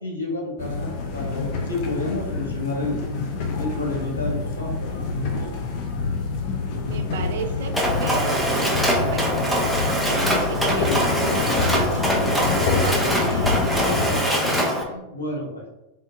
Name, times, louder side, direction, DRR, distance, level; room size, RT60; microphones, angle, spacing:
voice 1, 0.0-3.0 3.6-5.5 14.4-15.7, left 2 dB, 80° left, -3 dB, 1.2 m, -30 dB
sound 1, 0.6-14.2, left 4 dB, 45° left, 0.6 m, -27 dB
voice 2, 6.7-7.7 8.0-14.1, right 4 dB, 60° right, 6 dB, 0.5 m, -34 dB
Mechanisms, 7.7-14.8, equal, ahead, 0.9 m, -23 dB
3.8 x 3.8 x 2.5 m, 1.0 s
figure-of-eight pair, 90°, 0 cm